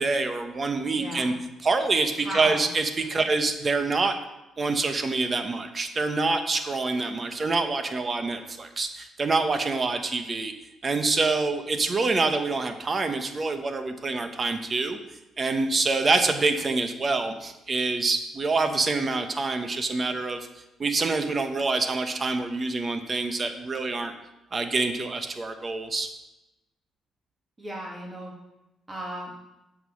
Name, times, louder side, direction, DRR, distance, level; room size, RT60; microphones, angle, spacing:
voice 1, 0.0-1.3 1.6-4.2 4.6-10.5 10.8-15.0 15.4-20.5 20.8-24.1 24.5-26.1, right 3 dB, 35° right, 7 dB, 1.1 m, -26 dB
voice 2, 1.0-1.3 2.2-2.7 27.6-28.3 28.9-29.3, equal, 20° right, -3 dB, 2.6 m, -35 dB
8.0 x 6.1 x 6.4 m, 0.97 s
cardioid pair, 90°, 0 cm